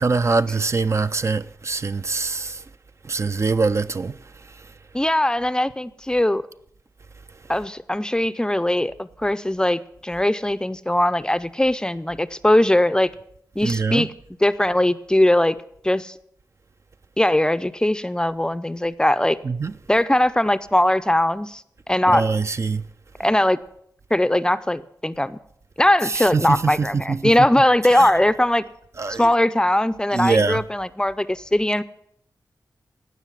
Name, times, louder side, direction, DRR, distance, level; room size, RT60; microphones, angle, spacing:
voice 1, 0.0-2.6 3.1-4.1 13.6-14.1 19.4-19.7 22.1-22.8 26.1-27.2 27.9-28.1 29.0-29.3 30.1-30.6, right 4 dB, 45° right, 0.4 m, -23 dB
voice 2, 4.9-6.4 7.5-13.1 13.6-14.1 14.4-15.6 15.8-16.1 17.2-19.4 19.9-21.6 21.9-22.3 23.2-23.6 24.1-25.4 25.8-28.6 29.2-31.8, left 1 dB, 10° left, 0.5 m, -20 dB
17.5 x 5.9 x 7.3 m
wide cardioid pair, 75°, 7 cm